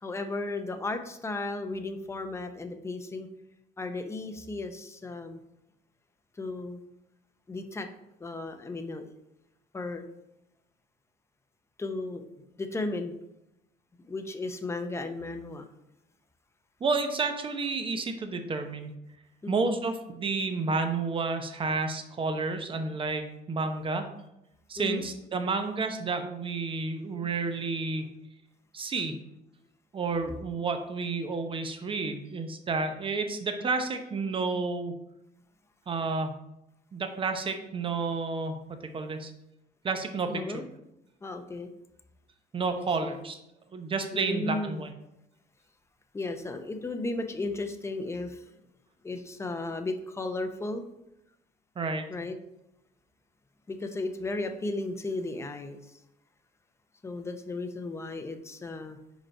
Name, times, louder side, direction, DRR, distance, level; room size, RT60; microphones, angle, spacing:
voice 1, 0.0-3.3 3.8-5.4 6.4-6.8 7.5-7.9 8.2-9.1 9.7-10.1 11.8-12.3 12.6-13.2 14.1-15.7 19.4-19.7 24.8-25.0 40.2-40.6 41.2-41.7 42.7-43.2 44.1-44.8 46.1-48.4 49.0-50.8 52.1-52.4 53.7-56.0 57.0-59.0, left 2 dB, 15° left, 6 dB, 0.7 m, -35 dB
voice 2, 16.8-18.9 19.5-24.1 24.7-28.1 28.7-29.1 29.9-34.9 35.9-36.4 36.9-39.3 39.8-40.6 42.5-43.4 43.7-44.9 51.8-52.0, right 4 dB, 30° right, 6 dB, 0.9 m, -30 dB
5.1 x 5.0 x 4.4 m, 0.86 s
cardioid pair, 110°, 17 cm